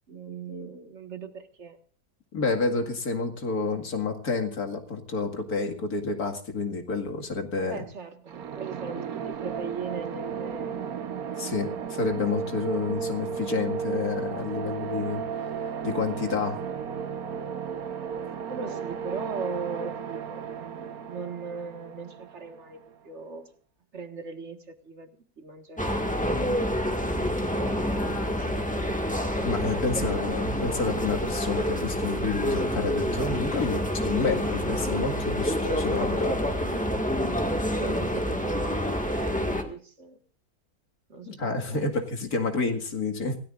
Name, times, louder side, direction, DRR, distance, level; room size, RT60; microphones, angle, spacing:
voice 1, 0.1-1.8 7.6-11.2 18.5-23.5 23.9-25.1 25.4-26.5 27.2-29.0 29.9-30.6 37.5-40.2 41.1-41.9, right 5 dB, 50° right, 7 dB, 1.9 m, -39 dB
voice 2, 2.3-7.8 11.4-15.2 15.8-16.6 29.4-36.4 41.3-43.4, left 4 dB, 75° left, 4 dB, 2.5 m, -29 dB
sound 1, 8.3-23.0, right 7 dB, 75° right, 1.5 m, -34 dB
sound 2, 25.8-39.6, equal, 5° left, 1.8 m, -28 dB
26.5 x 17.5 x 2.5 m, 0.42 s
omnidirectional pair, 1.6 m